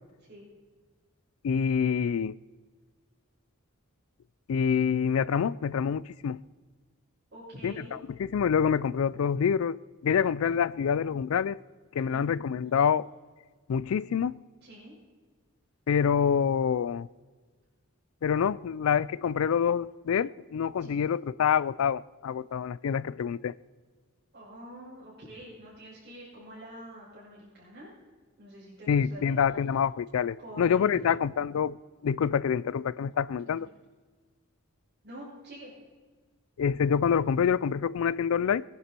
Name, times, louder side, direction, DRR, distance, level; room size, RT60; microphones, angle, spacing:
voice 1, 1.4-2.4 4.5-6.4 7.6-11.6 11.9-13.1 13.7-14.4 15.9-17.1 18.2-23.6 28.9-33.7 36.6-38.6, left 7 dB, 70° left, 0.4 m, -26 dB
voice 2, 7.3-8.0 12.1-12.3 14.6-14.9 20.8-20.9 24.3-27.9 28.4-29.3 30.4-31.1 33.4-33.5 35.0-35.7, equal, 50° right, 6.1 m, -46 dB
22.0 x 11.0 x 4.5 m
head